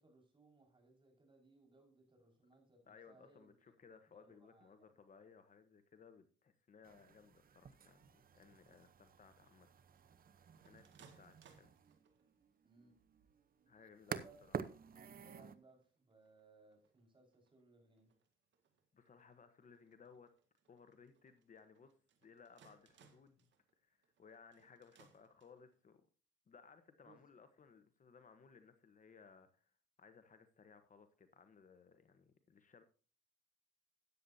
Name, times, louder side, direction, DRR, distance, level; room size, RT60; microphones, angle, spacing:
voice 1, 0.0-4.9 12.6-13.0 14.1-14.5 15.2-18.1 27.0-27.2, right 3 dB, 25° right, 2 dB, 5.1 m, -67 dB
voice 2, 2.9-9.8 10.6-11.7 13.7-14.6 18.9-20.3 20.7-21.9 22.2-23.4 23.8-26.1 26.5-29.7 30.0-32.8, left 5 dB, 40° left, 9 dB, 1.1 m, -62 dB
sound 1, 6.8-15.5, right 7 dB, 45° right, 0.8 m, -50 dB
sound 2, 9.9-12.5 13.1-13.6 14.1-14.2 14.4-14.9 15.3-25.8, right 6 dB, 65° right, 2.0 m, -70 dB
13.5 x 9.4 x 2.8 m, 0.39 s
cardioid pair, 90°, 20 cm